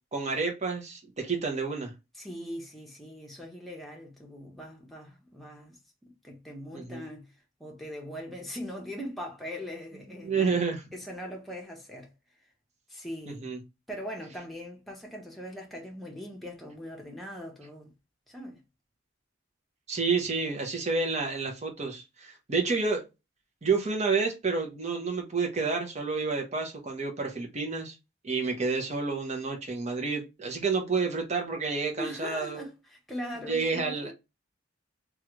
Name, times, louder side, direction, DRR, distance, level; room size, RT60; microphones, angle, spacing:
voice 1, 0.1-1.9 6.7-7.0 10.2-10.8 13.3-13.6 19.9-23.0 23.6-27.9 28.2-32.6 33.5-34.1, right 4 dB, 35° right, 0.9 m, -29 dB
voice 2, 2.1-7.3 7.6-10.6 10.9-12.1 12.9-13.5 13.9-17.9 18.3-18.6 32.0-34.1, equal, ahead, 0.9 m, -41 dB
3.1 x 2.4 x 3.0 m
head